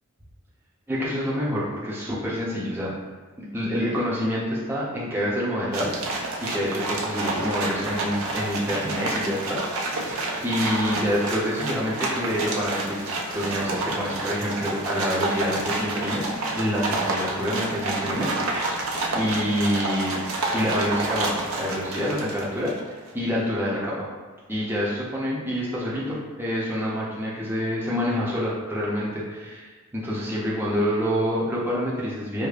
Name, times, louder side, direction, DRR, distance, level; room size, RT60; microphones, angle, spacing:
voice 1, 0.9-2.9 3.4-5.9 6.4-16.2 16.5-20.2 20.5-22.7 23.1-24.1 24.5-32.5, equal, 10° right, -6 dB, 0.6 m, -27 dB
sound 1, 5.7-22.9, right 2 dB, 75° right, 0.5 m, -29 dB
4.8 x 2.1 x 2.4 m, 1.5 s
head